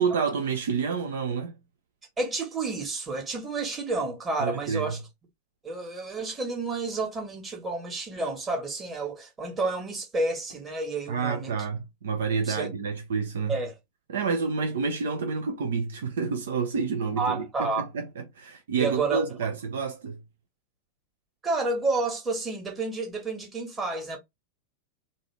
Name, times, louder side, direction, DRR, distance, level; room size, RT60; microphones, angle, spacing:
voice 1, 0.0-1.5 4.4-5.0 11.1-13.6 14.1-20.2, right 5 dB, 60° right, 0.6 m, -29 dB
voice 2, 2.2-5.0 5.6-11.5 12.4-12.7 13.5-13.8 17.2-17.9 18.7-19.3 21.4-24.2, right 3 dB, 20° right, 1.6 m, -30 dB
3.8 x 2.6 x 3.3 m
figure-of-eight pair, 90°, 0 cm